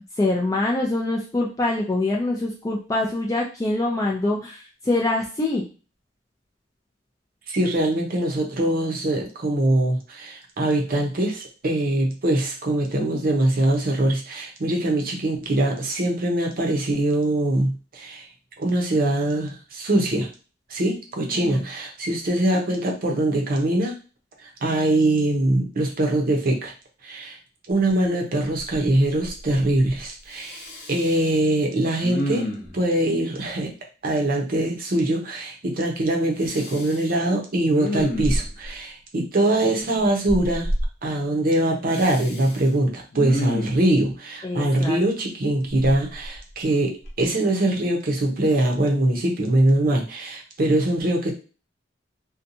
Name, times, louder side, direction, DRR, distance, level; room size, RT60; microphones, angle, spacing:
voice 1, 0.2-5.6 21.3-21.6 44.4-45.0, left 2 dB, 20° left, -2 dB, 0.3 m, -24 dB
voice 2, 7.5-18.2 18.6-20.3 20.7-23.9 24.4-26.7 27.0-27.4 27.7-32.5 32.7-33.7 34.0-40.7 41.0-51.3, right 1 dB, 50° right, 1 dB, 0.7 m, -23 dB
Respiratory sounds, 27.9-28.0 28.4-29.0 29.2-30.0 30.3-31.3 32.0-32.8 36.4-37.1 37.6-38.7 40.3-40.9 41.9-42.6 43.1-43.9 45.7-46.6 47.0-47.2, equal, 60° left, 0.7 m, -29 dB
2.7 x 2.2 x 2.6 m, 0.34 s
head